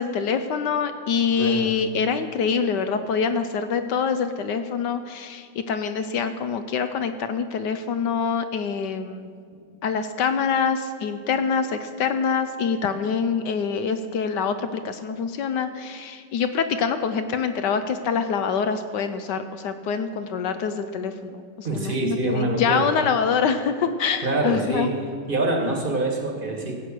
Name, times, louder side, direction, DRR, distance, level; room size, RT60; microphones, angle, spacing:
voice 1, 0.0-9.3 9.8-24.9, left 6 dB, 70° left, 9 dB, 1.1 m, -25 dB
voice 2, 1.4-1.7 9.5-9.6 21.6-22.9 24.2-24.9 25.3-26.8, right 2 dB, 30° right, 2 dB, 1.4 m, -25 dB
16.0 x 8.1 x 6.1 m, 2.1 s
omnidirectional pair, 2.3 m